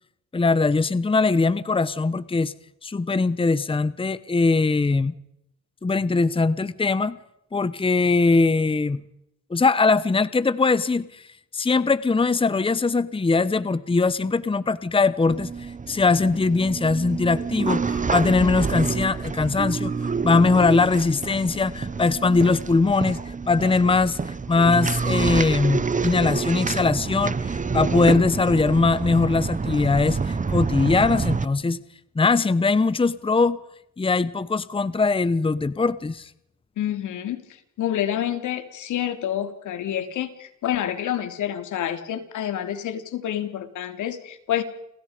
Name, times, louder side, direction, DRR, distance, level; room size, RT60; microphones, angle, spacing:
voice 1, 0.3-2.5 2.8-5.1 5.8-7.2 7.5-9.0 9.5-11.3 11.5-31.8 32.1-33.6 34.0-36.3, left 3 dB, 20° left, 16 dB, 1.0 m, -21 dB
sound 1, 15.3-31.4, right 5 dB, 25° right, 1.2 m, -27 dB
voice 2, 28.1-28.4 36.8-44.6, left 11 dB, 80° left, 8 dB, 3.1 m, -28 dB
29.5 x 26.0 x 5.2 m, 0.79 s
cardioid pair, 90°, 30 cm